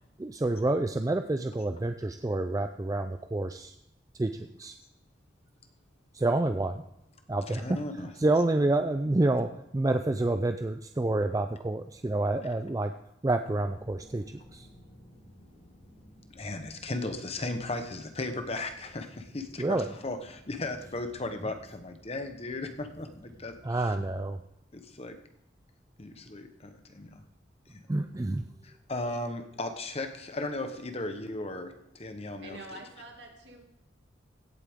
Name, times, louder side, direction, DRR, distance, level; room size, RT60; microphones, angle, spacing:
voice 1, 0.2-3.7 4.1-4.8 6.1-6.8 7.3-7.8 8.2-12.9 13.2-14.7 19.6-19.9 23.6-24.4 27.9-28.4, right 2 dB, 20° right, 7 dB, 0.4 m, -28 dB
voice 2, 7.5-8.1 16.3-23.5 23.8-23.9 24.7-25.2 26.0-27.2 27.7-27.8 28.6-32.8, left 2 dB, 35° left, 7 dB, 1.0 m, -36 dB
sound 1, 13.5-24.3, equal, 50° left, 5.0 m, -55 dB
voice 3, 32.4-33.6, right 2 dB, 65° right, 1 dB, 2.4 m, -45 dB
16.5 x 8.3 x 3.6 m, 0.84 s
head